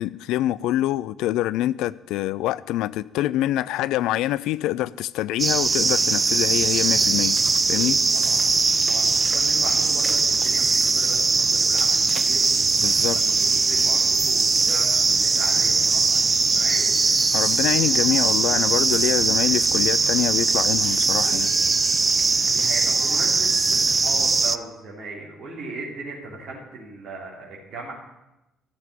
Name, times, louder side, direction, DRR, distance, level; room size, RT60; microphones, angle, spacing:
voice 1, 0.0-7.4 7.7-8.0 12.8-13.2 17.3-21.5, left 14 dB, 60° left, 0.4 m, -25 dB
sound 1, 5.4-24.6, right 4 dB, 25° right, 0.5 m, -20 dB
voice 2, 8.9-12.5 13.1-16.9 22.5-27.9, right 3 dB, 45° right, 3.3 m, -38 dB
13.0 x 7.0 x 9.5 m
figure-of-eight pair, 45°, 0 cm